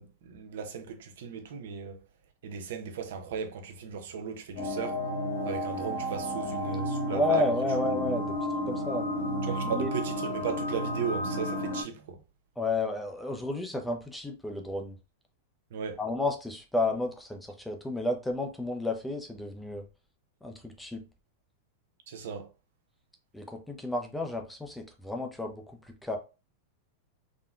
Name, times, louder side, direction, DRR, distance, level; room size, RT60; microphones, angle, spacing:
voice 1, 0.0-2.0 2.4-5.0 5.4-7.4 9.5-12.2 15.7-16.0 22.1-22.5, right 6 dB, 75° right, 0.6 m, -36 dB
sound 1, 4.6-11.8, equal, 80° left, 1.1 m, -32 dB
voice 2, 7.1-8.4 8.7-9.1 9.7-9.9 12.6-14.9 16.0-19.8 20.4-21.0 23.3-26.2, left 2 dB, 5° left, 0.4 m, -31 dB
3.6 x 2.1 x 2.3 m
supercardioid pair, 140°, 0 cm